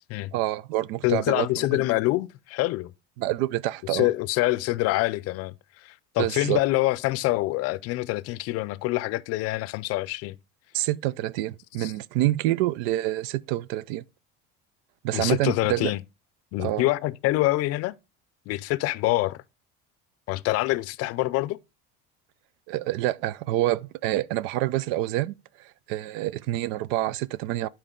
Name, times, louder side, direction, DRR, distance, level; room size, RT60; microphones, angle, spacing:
voice 1, 0.3-1.5 3.2-4.1 6.2-6.6 10.7-14.0 15.0-15.9 16.6-16.9 22.7-27.7, right 15 dB, 85° right, 0.5 m, -27 dB
voice 2, 1.0-2.9 3.9-10.4 11.8-11.9 15.1-16.0 16.5-18.0 18.5-19.4 20.3-21.6, left 18 dB, 55° left, 0.5 m, -26 dB
11.0 x 4.4 x 3.7 m
cardioid pair, 135°, 29 cm